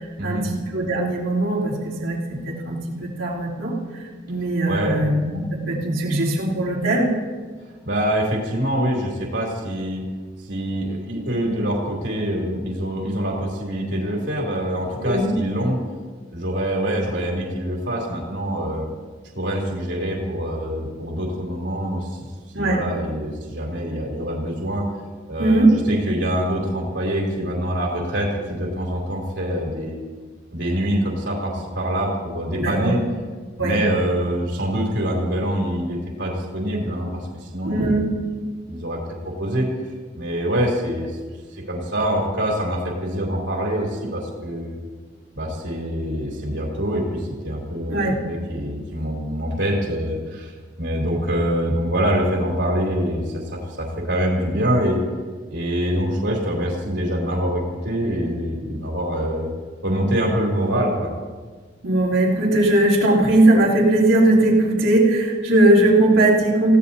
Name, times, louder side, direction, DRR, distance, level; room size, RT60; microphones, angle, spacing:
voice 1, 0.2-2.2 2.5-3.7 4.3-7.1 15.0-15.3 22.5-22.8 25.4-25.7 32.6-33.0 33.6-33.8 37.6-38.1 47.9-48.2 61.8-66.8, right 1 dB, 90° right, -4 dB, 3.9 m, -19 dB
voice 2, 4.7-5.0 7.8-10.0 10.5-15.8 16.3-18.9 19.4-22.2 22.6-24.9 25.3-30.0 30.5-33.0 33.6-38.1 38.6-39.0 39.2-39.7 40.2-41.1 41.5-44.8 45.3-48.0 48.2-50.5 50.8-55.0 55.5-59.5 59.8-61.1, equal, 65° right, -2 dB, 3.6 m, -25 dB
28.0 x 17.0 x 2.8 m, 1.4 s
head